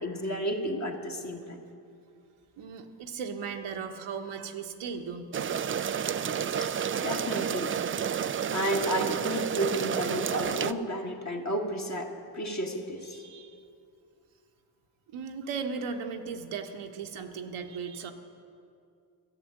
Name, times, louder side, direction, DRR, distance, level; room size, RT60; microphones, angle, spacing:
voice 1, 0.0-1.6 6.6-7.8 8.5-13.2, equal, 35° left, 2 dB, 1.8 m, -32 dB
voice 2, 2.6-5.7 13.1-13.6 15.1-18.1, right 5 dB, 75° right, 5 dB, 1.1 m, -37 dB
sound 1, 5.3-10.7, right 8 dB, 30° right, 0.3 m, -30 dB
13.0 x 6.7 x 8.7 m, 2.4 s
supercardioid pair, 45°, 50 cm